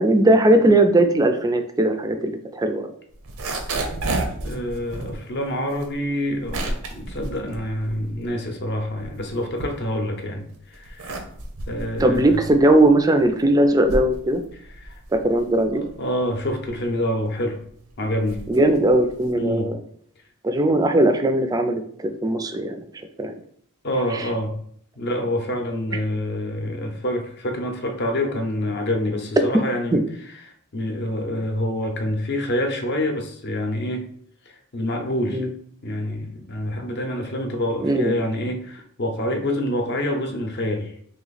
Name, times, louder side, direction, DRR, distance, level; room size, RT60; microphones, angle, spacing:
voice 1, 0.0-2.9 12.0-14.4 15.1-15.8 18.5-19.8 20.4-22.8 23.2-23.4 24.1-24.2 29.9-30.0 35.3-35.5 37.8-38.1, right 1 dB, 15° right, 7 dB, 0.3 m, -19 dB
sound 1, 3.1-8.4 8.8-10.2 10.7-19.5, right 2 dB, 90° right, 0.7 m, -32 dB
voice 2, 4.4-11.2 11.7-12.4 14.5-15.0 15.7-17.6 18.0-18.4 19.3-19.7 23.8-24.6 25.0-30.0 30.4-34.0 34.7-35.5 35.8-40.9, left 1 dB, 50° left, 4 dB, 0.7 m, -27 dB
3.1 x 2.9 x 4.0 m, 0.63 s
head